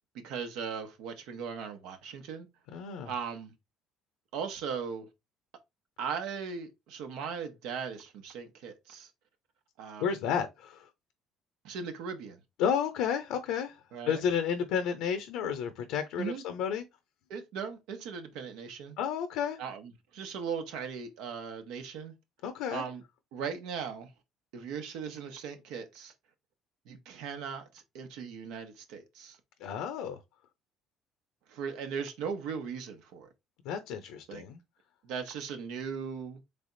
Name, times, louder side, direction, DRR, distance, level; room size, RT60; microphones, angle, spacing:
voice 1, 0.1-2.5 3.0-3.5 4.3-5.1 6.0-9.1 9.8-10.2 11.6-12.4 13.9-14.2 16.2-16.4 17.3-19.0 19.6-22.1 22.7-23.0 23.3-24.1 24.5-26.1 26.9-27.7 27.9-29.4 31.5-33.3 34.3-34.4 35.0-36.4, right 6 dB, 85° right, 1.0 m, -38 dB
voice 2, 2.7-3.1 10.0-10.9 12.6-13.8 14.0-16.8 19.0-19.6 22.4-22.8 29.6-30.2 33.6-34.6, left 7 dB, 85° left, 0.6 m, -31 dB
3.5 x 3.4 x 3.9 m
cardioid pair, 125°, 0 cm